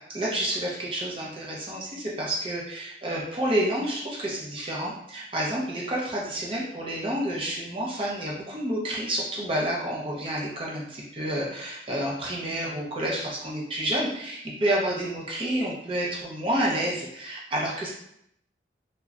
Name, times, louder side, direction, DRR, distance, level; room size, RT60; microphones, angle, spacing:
voice 1, 0.1-17.9, right 1 dB, 30° right, -4 dB, 0.6 m, -29 dB
2.9 x 2.1 x 2.4 m, 0.76 s
head